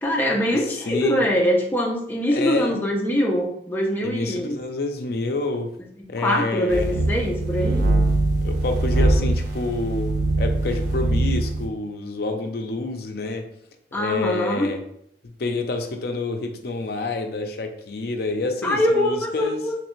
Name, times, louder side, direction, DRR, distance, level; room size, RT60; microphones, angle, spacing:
voice 1, 0.0-4.6 6.2-7.9 13.9-14.7 18.6-19.7, equal, 10° left, -2 dB, 0.6 m, -23 dB
voice 2, 0.5-1.2 2.3-2.8 4.0-5.7 6.1-7.2 8.4-13.5 13.9-14.8 15.2-19.6, left 3 dB, 55° left, 5 dB, 0.5 m, -28 dB
sound 1, 6.7-11.7, right 2 dB, 70° right, 0.7 m, -22 dB
3.2 x 3.2 x 3.1 m, 0.70 s
head